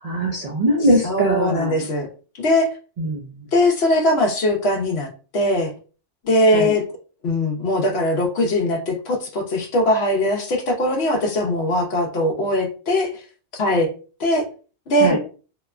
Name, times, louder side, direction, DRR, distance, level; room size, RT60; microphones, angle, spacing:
voice 1, 0.0-1.8 3.0-3.2 6.5-6.7 15.0-15.2, right 1 dB, 55° right, -2 dB, 0.4 m, -21 dB
voice 2, 1.0-2.1 2.3-2.7 3.5-5.7 6.2-6.8 7.2-13.2 13.5-13.9 14.2-14.4 14.9-15.2, left 1 dB, 65° left, 2 dB, 0.9 m, -20 dB
2.9 x 2.1 x 2.3 m, 0.37 s
omnidirectional pair, 1.2 m